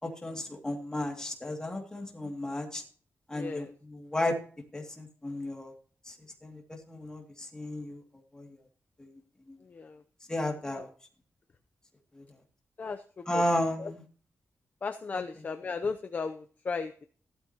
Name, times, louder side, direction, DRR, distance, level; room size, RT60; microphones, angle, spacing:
voice 1, 0.0-2.8 3.3-4.4 4.7-5.7 6.1-6.2 6.4-8.0 8.3-8.6 9.0-9.1 9.5-9.6 10.3-10.9 12.1-12.2 13.3-14.0 15.1-15.4, left 1 dB, 15° left, 1 dB, 2.5 m, -33 dB
voice 2, 3.3-3.7 9.7-10.0 10.7-10.8 12.8-13.4 13.8-13.9 14.8-17.1, left 4 dB, 30° left, 7 dB, 0.6 m, -35 dB
15.5 x 12.5 x 3.0 m, 0.43 s
wide cardioid pair, 175°, 5 cm